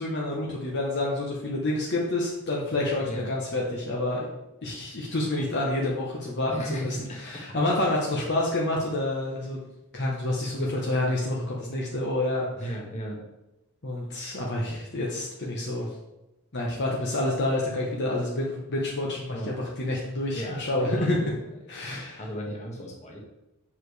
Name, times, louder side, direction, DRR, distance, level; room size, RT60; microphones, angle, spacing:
voice 1, 0.0-4.3 4.6-9.6 9.9-12.7 13.8-15.9 16.5-19.4 19.8-21.2 21.7-22.2, left 1 dB, 50° left, -3 dB, 0.9 m, -28 dB
voice 2, 6.4-7.4 12.5-13.2 19.3-19.6 20.3-21.1 21.7-23.2, equal, 30° left, -1 dB, 1.3 m, -36 dB
7.3 x 4.8 x 3.2 m, 0.96 s
head